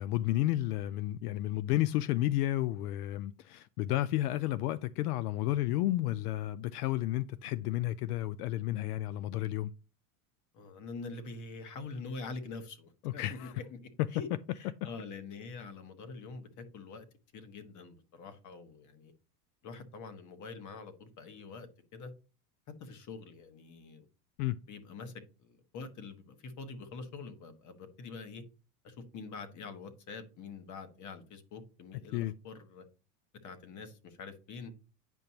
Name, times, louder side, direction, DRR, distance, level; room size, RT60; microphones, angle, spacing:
voice 1, 0.0-9.7 13.0-13.5 14.0-14.1 24.4-24.6 32.1-32.3, left 15 dB, 85° left, 0.5 m, -32 dB
voice 2, 10.5-13.8 14.1-14.3 14.5-17.1 17.3-19.1 19.6-22.1 22.8-24.1 24.7-25.1 25.4-28.4 28.8-32.8 33.4-34.7, left 4 dB, 40° left, 1.4 m, -45 dB
9.2 x 5.2 x 2.9 m
supercardioid pair, 115°, 44 cm